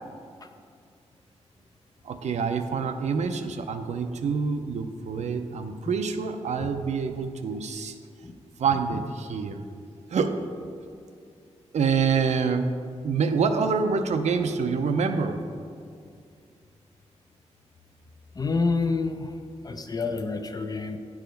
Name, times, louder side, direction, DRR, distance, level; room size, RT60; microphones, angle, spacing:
voice 1, 2.0-8.0 8.6-9.6 10.1-10.4 11.7-12.7 13.0-15.4, right 5 dB, 75° right, 7 dB, 0.6 m, -26 dB
voice 2, 18.4-19.3 19.6-21.0, left 4 dB, 35° left, 7 dB, 0.6 m, -27 dB
9.6 x 4.9 x 5.1 m, 2.3 s
wide cardioid pair, 110°, 12 cm